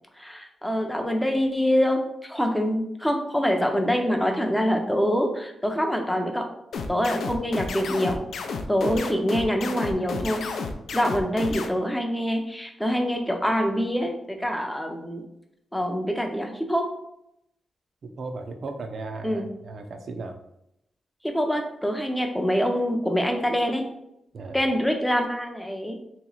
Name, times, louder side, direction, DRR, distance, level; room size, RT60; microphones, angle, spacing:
voice 1, 0.2-6.5 6.9-8.2 8.7-10.4 10.9-15.2 15.7-16.9 19.2-19.5 21.2-23.8 24.5-26.0, equal, 5° left, 3 dB, 0.5 m, -25 dB
sound 1, 6.7-11.7, left 4 dB, 75° left, 0.4 m, -31 dB
voice 2, 18.0-20.4 24.3-24.6, right 3 dB, 50° right, 6 dB, 0.4 m, -36 dB
3.1 x 3.0 x 3.9 m, 0.80 s
wide cardioid pair, 170°, 0 cm